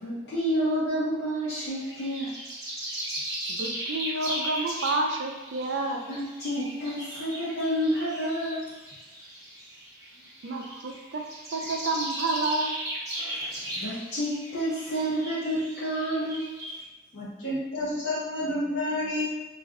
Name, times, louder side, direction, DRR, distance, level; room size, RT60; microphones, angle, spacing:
voice 1, 0.0-2.3 6.1-8.7 13.2-16.5, equal, 60° left, -11 dB, 0.7 m, -29 dB
sound 1, 1.7-16.8, right 1 dB, 20° right, 0.7 m, -37 dB
voice 2, 3.5-6.0 10.4-11.2 11.5-12.7, right 2 dB, 80° right, 2 dB, 0.4 m, -29 dB
voice 3, 17.1-19.2, left 1 dB, 80° left, -6 dB, 1.1 m, -30 dB
2.4 x 2.2 x 3.6 m, 1.1 s
head